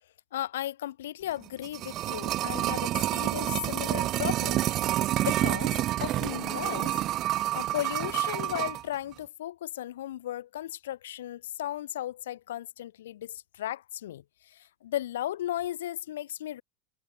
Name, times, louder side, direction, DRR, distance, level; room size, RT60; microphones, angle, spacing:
voice 1, 0.3-4.7 5.2-7.0 7.5-16.6, left 13 dB, 75° left, 5.3 m, -35 dB
sound 1, 1.4-8.8 9.1-9.2, right 14 dB, 45° right, 3.1 m, -28 dB
hypercardioid pair, 95°, 0 cm